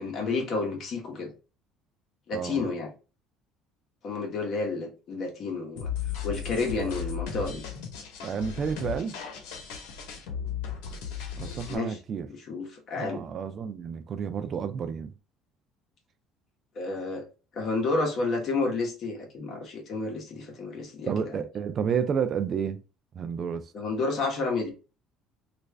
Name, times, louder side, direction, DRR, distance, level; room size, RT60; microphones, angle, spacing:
voice 1, 0.0-1.3 2.3-2.9 4.0-5.9 6.2-7.6 11.4-12.0 12.3-13.2 16.7-17.3 17.5-21.4 23.7-24.7, left 3 dB, 45° left, 1.1 m, -30 dB
voice 2, 2.3-2.6 8.2-9.2 11.4-12.3 13.0-15.1 21.1-22.8 23.1-23.7, right 7 dB, 35° right, 0.3 m, -30 dB
sound 1, 5.8-11.8, left 7 dB, 90° left, 0.9 m, -36 dB
3.1 x 2.5 x 3.3 m
cardioid pair, 145°, 0 cm